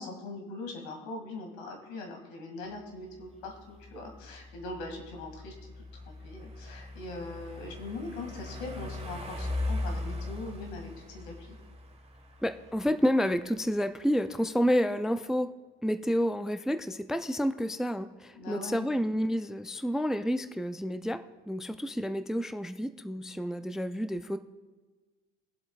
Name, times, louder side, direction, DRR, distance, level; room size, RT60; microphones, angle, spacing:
voice 1, 0.0-5.7 6.2-11.6 18.4-18.9, left 2 dB, 80° left, 3 dB, 2.2 m, -41 dB
sound 1, 2.7-14.4, left 2 dB, 20° right, 1.4 m, -40 dB
voice 2, 12.4-15.5 15.8-24.4, equal, ahead, 10 dB, 0.4 m, -29 dB
21.5 x 7.7 x 2.4 m, 1.3 s
hypercardioid pair, 70°, 32 cm